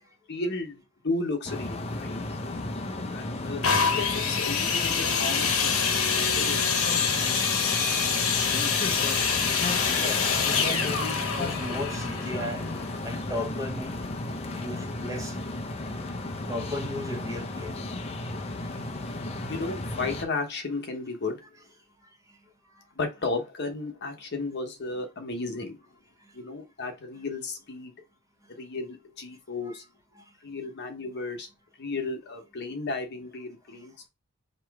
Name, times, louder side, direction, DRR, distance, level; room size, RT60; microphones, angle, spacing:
voice 1, 0.3-2.2 3.1-5.9 6.3-7.0 19.5-21.4 22.9-25.8 26.3-27.9 28.5-29.8 30.4-31.5 31.8-34.1, left 3 dB, 50° left, 0.9 m, -34 dB
sound 1, 1.5-20.3, left 2 dB, 30° left, 0.5 m, -34 dB
sound 2, 3.6-13.3 14.0-14.1, left 6 dB, 80° left, 1.0 m, -26 dB
voice 2, 9.9-12.6 13.0-13.9 14.6-15.4 16.5-17.8, left 1 dB, 15° right, 0.8 m, -35 dB
3.0 x 2.9 x 4.6 m
head